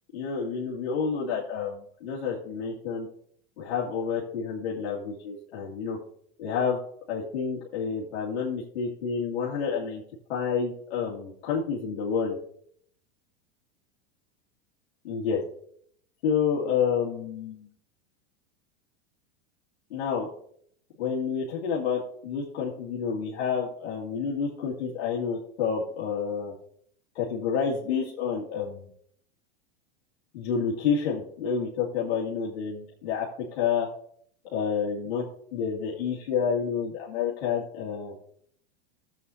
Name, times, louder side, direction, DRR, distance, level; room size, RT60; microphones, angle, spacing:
voice 1, 0.1-3.1 3.6-6.0 6.4-6.8 7.1-10.0 10.3-12.4 15.0-15.4 16.2-17.7 19.9-20.3 21.0-26.5 27.2-28.9 30.3-33.3 33.5-33.9 34.5-35.2 35.5-38.1, left 6 dB, 75° left, -5 dB, 2.3 m, -29 dB
13.5 x 8.0 x 2.8 m, 0.65 s
hypercardioid pair, 110°, 32 cm